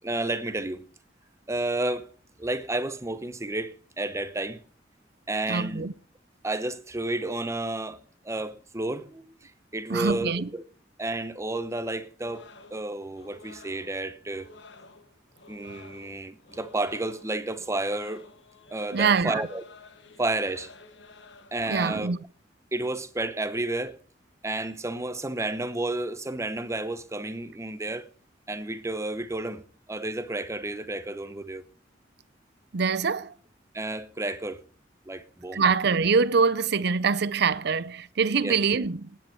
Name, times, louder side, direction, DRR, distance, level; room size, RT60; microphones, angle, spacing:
voice 1, 0.0-0.8 1.5-2.1 2.4-4.6 5.3-5.9 6.4-8.0 8.2-10.6 11.0-14.5 15.5-18.3 18.7-19.6 20.2-20.7 21.5-22.1 22.7-24.0 24.4-28.1 28.5-29.6 29.9-31.6 33.7-34.6 35.1-35.6 38.3-38.6, right 2 dB, 15° right, 0.9 m, -31 dB
voice 2, 5.5-5.9 9.9-10.5 18.9-19.4 21.7-22.2 32.7-33.3 35.5-39.2, right 5 dB, 65° right, 0.6 m, -24 dB
sound 1, 12.2-21.6, left 3 dB, 75° left, 1.5 m, -51 dB
19.0 x 9.4 x 4.6 m
head